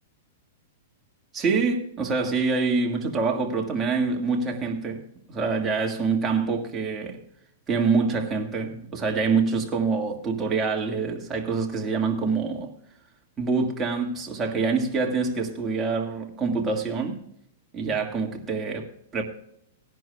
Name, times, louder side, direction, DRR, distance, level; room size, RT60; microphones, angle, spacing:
voice 1, 1.3-5.0 5.3-7.2 7.7-12.7 13.4-17.2 17.7-19.2, right 4 dB, 20° right, 1.7 m, -26 dB
19.5 x 10.5 x 2.3 m
hypercardioid pair, 150°, 0 cm